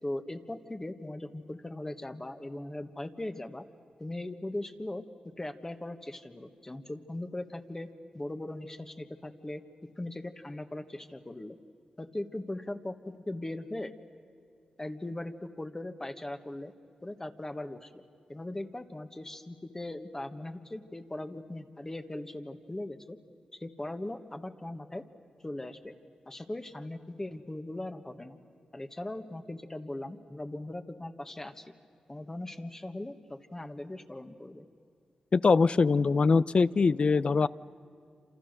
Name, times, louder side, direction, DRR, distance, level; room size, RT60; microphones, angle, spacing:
voice 1, 0.0-3.6 4.0-7.9 8.1-9.6 10.0-11.6 12.0-13.9 14.8-16.7 17.0-18.0 18.3-23.2 23.5-25.0 25.4-25.9 26.2-28.4 28.7-31.7 32.1-34.7, left 1 dB, 20° left, 6 dB, 1.5 m, -39 dB
voice 2, 35.3-37.5, left 4 dB, 50° left, 18 dB, 0.6 m, -23 dB
28.0 x 27.0 x 6.6 m, 2.4 s
cardioid pair, 60°, 2 cm